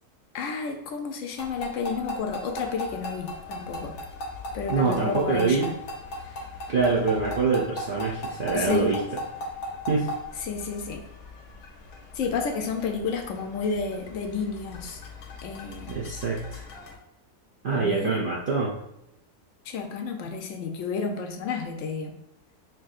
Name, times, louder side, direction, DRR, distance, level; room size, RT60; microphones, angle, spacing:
voice 1, 0.3-4.0 4.5-5.7 6.2-6.4 8.5-9.0 10.4-11.0 12.1-15.0 15.4-16.0 17.7-18.2 19.6-22.2, left 5 dB, 70° left, 4 dB, 0.8 m, -31 dB
sound 1, 1.4-17.0, left 1 dB, 90° left, 1.2 m, -38 dB
voice 2, 4.7-5.7 6.7-9.0 9.9-10.1 15.9-16.6 17.6-18.8, right 4 dB, 70° right, -5 dB, 0.5 m, -25 dB
4.6 x 3.0 x 2.4 m, 0.86 s
omnidirectional pair, 1.6 m